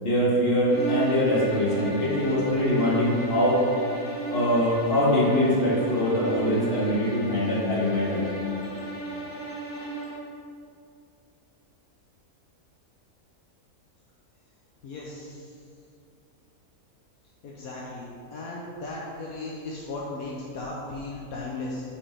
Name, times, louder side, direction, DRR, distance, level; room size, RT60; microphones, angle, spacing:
voice 1, 0.0-3.6 4.3-8.2, left 1 dB, 40° left, -7 dB, 2.0 m, -23 dB
sound 1, 0.6-10.3, right 3 dB, 15° left, 1.4 m, -35 dB
voice 2, 14.8-15.4 17.4-18.1 18.3-21.8, left 2 dB, 75° left, -4 dB, 1.2 m, -36 dB
5.2 x 4.9 x 5.6 m, 2.4 s
omnidirectional pair, 1.6 m